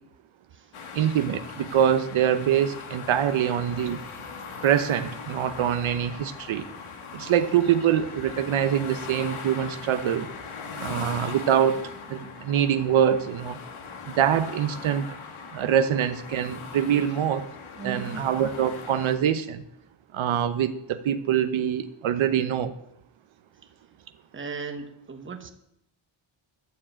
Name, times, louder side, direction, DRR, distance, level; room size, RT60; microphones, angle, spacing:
sound 1, 0.7-19.2, left 5 dB, 80° left, 1.7 m, -40 dB
voice 1, 0.9-4.0 4.6-6.7 7.1-10.3 10.8-11.8 12.1-13.6 14.0-15.1 15.5-17.4 17.8-19.6 20.1-22.7, right 9 dB, 75° right, 10 dB, 0.9 m, -24 dB
voice 2, 17.7-18.3 24.3-25.5, right 5 dB, 25° right, 6 dB, 1.2 m, -37 dB
11.5 x 7.4 x 8.6 m, 0.79 s
wide cardioid pair, 170°, 48 cm